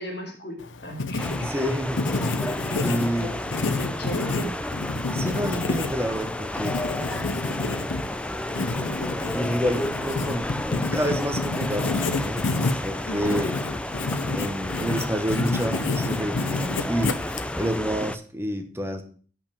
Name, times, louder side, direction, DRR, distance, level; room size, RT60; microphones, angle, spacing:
voice 1, 0.0-1.5 3.1-3.5 3.8-4.5 13.0-13.5, equal, 60° left, 2 dB, 2.1 m, -35 dB
Writing, 0.6-17.8, left 3 dB, 85° left, 0.7 m, -29 dB
sound 1, 1.2-18.2, left 1 dB, 5° left, 0.3 m, -31 dB
voice 2, 1.4-2.1 2.8-3.4 5.1-6.8 9.3-12.4 12.8-13.6 14.3-17.2 17.6-19.0, equal, 15° right, 6 dB, 0.8 m, -29 dB
5.8 x 5.2 x 6.8 m, 0.43 s
head